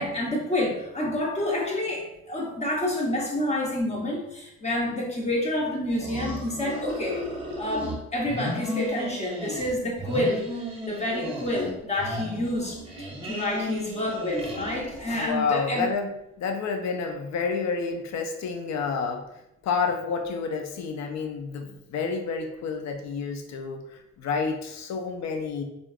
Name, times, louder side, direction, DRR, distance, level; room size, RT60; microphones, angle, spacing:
voice 1, 0.0-7.2 7.6-10.4 10.8-15.9, left 1 dB, 20° left, -2 dB, 0.9 m, -28 dB
sound 1, 5.9-8.0 8.2-9.7 10.0-11.7 12.0-15.2, equal, 20° right, 0.8 m, -34 dB
voice 2, 15.1-16.1 16.4-19.2 19.6-25.6, left 5 dB, 65° left, 4 dB, 0.5 m, -29 dB
3.3 x 2.5 x 2.4 m, 0.85 s
cardioid pair, 90°, 30 cm